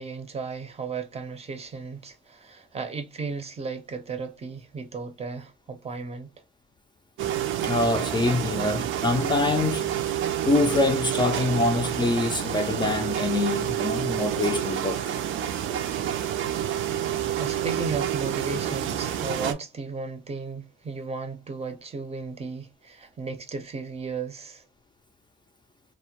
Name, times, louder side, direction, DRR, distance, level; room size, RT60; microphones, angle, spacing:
voice 1, 0.0-6.3 16.9-24.6, right 4 dB, 30° right, 0.5 m, -35 dB
sound 1, 7.2-19.5, right 10 dB, 85° right, 0.4 m, -28 dB
voice 2, 7.6-9.9 10.4-15.2, left 3 dB, 25° left, 0.4 m, -25 dB
2.1 x 2.1 x 2.8 m
cardioid pair, 90°, 20 cm